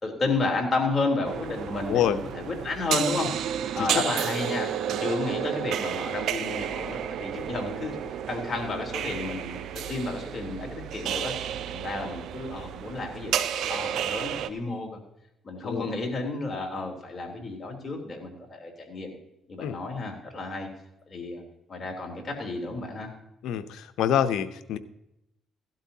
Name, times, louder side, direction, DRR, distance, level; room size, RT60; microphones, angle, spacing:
voice 1, 0.0-3.3 3.7-11.3 11.7-15.0 15.4-19.2 19.5-20.7 21.1-21.4 21.7-23.1, left 3 dB, 35° left, 0 dB, 3.5 m, -31 dB
sound 1, 1.2-14.5, right 10 dB, 80° right, 0.7 m, -32 dB
voice 2, 23.4-24.8, left 10 dB, 85° left, 11 dB, 0.7 m, -26 dB
16.5 x 12.0 x 2.8 m, 0.86 s
cardioid pair, 90°, 0 cm